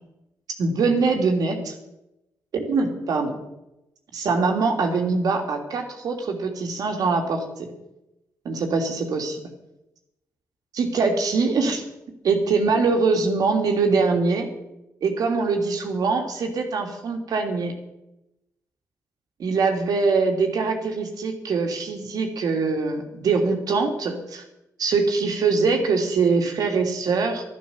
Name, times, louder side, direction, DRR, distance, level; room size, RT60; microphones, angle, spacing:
voice 1, 0.6-1.7 2.5-3.4 4.1-7.7 8.4-9.4 10.7-11.8 12.2-14.5 15.0-17.7 19.4-24.4 24.8-27.4, right 4 dB, 70° right, 4 dB, 2.8 m, -23 dB
11.5 x 11.5 x 7.2 m, 0.90 s
cardioid pair, 70°, 7 cm